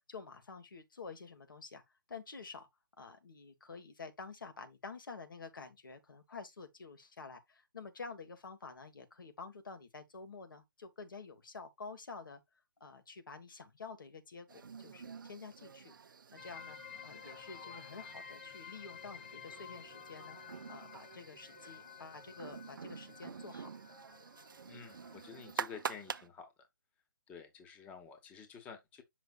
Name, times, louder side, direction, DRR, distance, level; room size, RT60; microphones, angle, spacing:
voice 1, 0.1-1.8 2.1-2.7 3.0-12.4 12.8-15.9 16.3-16.8 17.0-20.4 20.7-23.7, left 4 dB, 75° left, 1.6 m, -49 dB
sound 1, 14.5-26.3, right 6 dB, 75° right, 0.5 m, -47 dB
sound 2, 16.4-25.6, left 9 dB, 35° left, 0.5 m, -53 dB
voice 2, 24.7-26.5 27.3-29.0, left 6 dB, 15° left, 0.9 m, -50 dB
7.0 x 5.8 x 2.4 m
hypercardioid pair, 150°, 11 cm